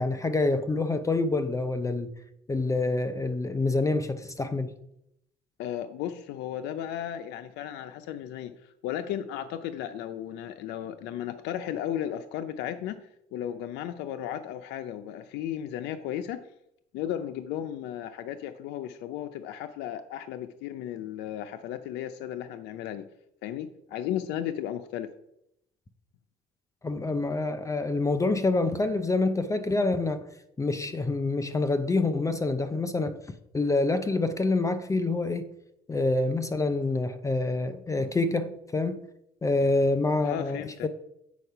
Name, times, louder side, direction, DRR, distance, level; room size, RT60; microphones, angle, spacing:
voice 1, 0.0-2.1 2.5-4.7 26.8-30.3 30.6-33.2 33.5-35.5 35.9-39.0 39.4-40.9, left 2 dB, 20° left, 0.5 m, -27 dB
voice 2, 5.6-13.0 13.3-16.4 16.9-23.1 23.4-25.1 40.2-40.9, left 10 dB, 90° left, 0.5 m, -35 dB
8.3 x 4.5 x 5.6 m
cardioid pair, 110°, 17 cm